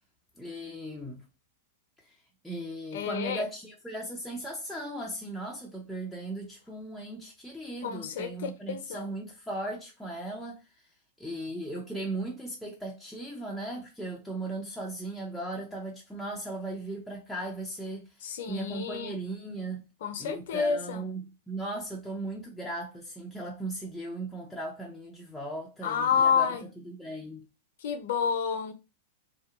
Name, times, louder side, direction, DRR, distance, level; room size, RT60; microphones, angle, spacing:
voice 1, 0.4-1.3 2.1-2.2 2.4-10.6 11.2-18.1 18.5-19.8 20.2-27.5, right 2 dB, ahead, 0.6 m, -37 dB
voice 2, 2.9-3.5 7.8-9.0 18.2-19.2 20.0-21.0 25.8-26.6 27.8-28.7, left 7 dB, 65° left, 0.6 m, -29 dB
2.7 x 2.3 x 2.4 m
hypercardioid pair, 105°, 0 cm